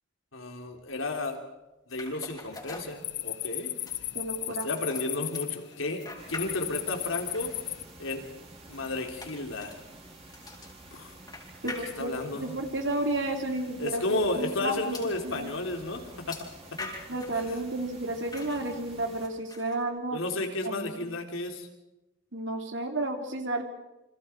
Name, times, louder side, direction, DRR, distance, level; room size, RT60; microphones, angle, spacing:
voice 1, 0.3-1.4 1.9-3.7 4.5-6.0 6.3-7.5 8.0-8.3 8.7-9.8 10.9-11.1 11.6-12.5 13.8-16.9 17.3-17.6 20.1-21.7, left 2 dB, 80° left, 3 dB, 3.7 m, -33 dB
sound 1, 1.9-3.5 3.9-6.9 7.1-12.4 13.1-13.2 13.5-13.6 14.9-15.2 16.3-17.4 18.3-18.7 19.2-19.8, left 2 dB, 20° left, 4.3 m, -45 dB
sound 2, 2.9-7.8, left 15 dB, 55° left, 0.9 m, -35 dB
voice 2, 4.1-4.7 11.6-14.9 15.2-15.5 17.1-20.2 20.6-21.1 22.3-23.6, right 1 dB, 60° right, 5 dB, 2.9 m, -32 dB
sound 3, 6.2-19.3, right 2 dB, 30° right, 4.6 m, -50 dB
28.5 x 26.0 x 4.7 m, 0.97 s
head